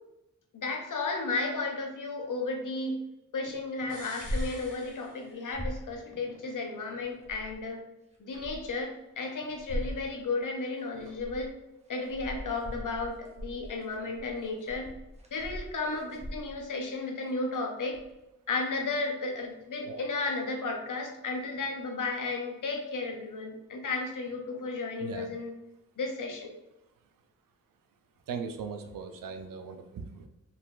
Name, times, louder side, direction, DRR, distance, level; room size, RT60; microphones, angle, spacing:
voice 1, 0.5-2.9 3.3-7.8 8.2-11.5 11.9-14.9 15.3-18.0 18.5-25.5 26.0-26.6, left 3 dB, 70° left, 2 dB, 0.7 m, -34 dB
sound 1, 3.9-5.8 6.1-6.2, left 2 dB, 90° left, 1.2 m, -48 dB
sound 2, 4.2-4.6 4.9-5.0 5.3-5.9 7.0-7.6 8.1-8.8 9.5-10.0 10.8-11.5 11.9-16.7 17.9-18.2 18.9-19.0, equal, 20° right, 0.8 m, -39 dB
voice 2, 28.3-30.3, right 5 dB, 85° right, 6 dB, 0.5 m, -39 dB
3.9 x 2.9 x 2.4 m, 0.92 s
cardioid pair, 40°, 33 cm